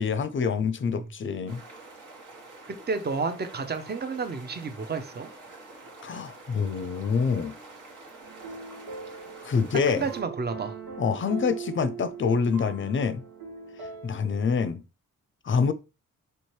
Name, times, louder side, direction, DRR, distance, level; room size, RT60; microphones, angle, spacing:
voice 1, 0.0-1.6 6.0-7.5 9.4-10.1 11.0-13.2 14.0-14.8 15.4-15.7, left 5 dB, 35° left, 0.5 m, -26 dB
sound 1, 1.5-10.2, right 2 dB, 60° right, 1.4 m, -47 dB
voice 2, 2.7-5.3 10.0-10.8, right 4 dB, 30° right, 0.7 m, -31 dB
sound 2, 8.2-14.7, right 6 dB, 85° right, 1.3 m, -41 dB
4.4 x 2.7 x 3.1 m
supercardioid pair, 50°, 34 cm